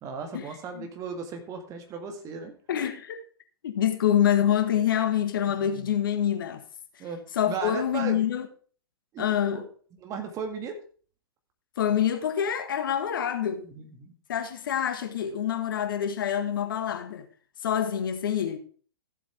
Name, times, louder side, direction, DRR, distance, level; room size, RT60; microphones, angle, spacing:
voice 1, 0.0-2.5 5.5-5.9 7.0-7.2 7.5-8.2 9.1-9.7 10.0-10.8 13.6-14.1, right 5 dB, 25° right, 1.9 m, -36 dB
voice 2, 2.7-3.2 3.6-6.6 7.3-8.5 9.2-9.6 11.8-13.7 14.3-17.3 17.6-18.6, left 9 dB, 55° left, 1.5 m, -26 dB
14.5 x 7.7 x 3.5 m
figure-of-eight pair, 110°, 13 cm